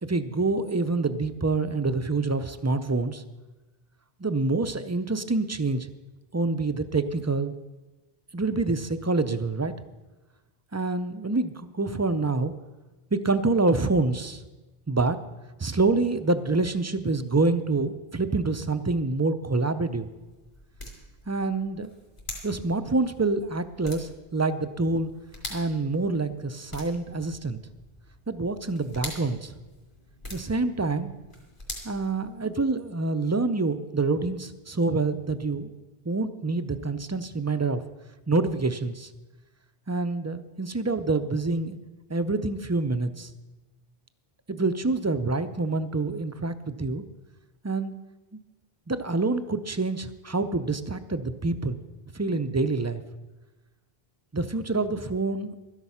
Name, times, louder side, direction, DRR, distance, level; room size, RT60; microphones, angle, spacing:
voice 1, 0.0-3.2 4.2-5.9 6.3-7.5 8.3-9.7 10.7-12.5 13.1-14.4 14.9-15.2 15.6-20.1 21.3-21.9 22.4-25.1 25.5-27.6 28.3-29.5 30.3-31.1 31.8-35.7 36.1-37.8 38.3-39.1 39.9-41.8 42.1-43.3 44.5-47.0 47.6-47.9 48.3-48.4 48.9-51.8 52.1-53.0 54.3-55.6, right 3 dB, 25° right, 11 dB, 0.4 m, -26 dB
sound 1, 19.6-32.8, left 1 dB, 55° left, 3.1 m, -45 dB
13.0 x 10.5 x 5.6 m, 1.1 s
omnidirectional pair, 1.0 m